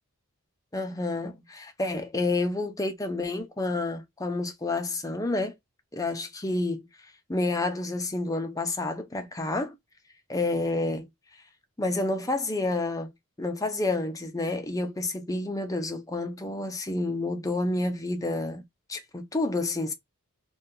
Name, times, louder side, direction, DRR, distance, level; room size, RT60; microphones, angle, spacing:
voice 1, 0.7-5.5 5.9-6.9 7.3-9.8 10.3-11.1 11.8-13.1 13.4-18.6 18.9-19.9, left 2 dB, 15° left, 0.5 m, -29 dB
2.7 x 2.3 x 3.6 m
head